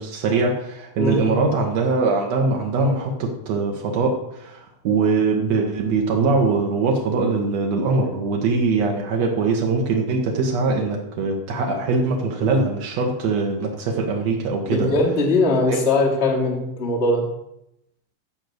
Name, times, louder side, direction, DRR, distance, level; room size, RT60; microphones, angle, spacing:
voice 1, 0.0-14.9 15.7-15.8, right 3 dB, 85° right, 1 dB, 1.5 m, -22 dB
voice 2, 1.0-1.3 14.7-17.3, left 2 dB, 25° left, -2 dB, 1.4 m, -20 dB
13.0 x 5.1 x 8.0 m, 0.83 s
omnidirectional pair, 5.4 m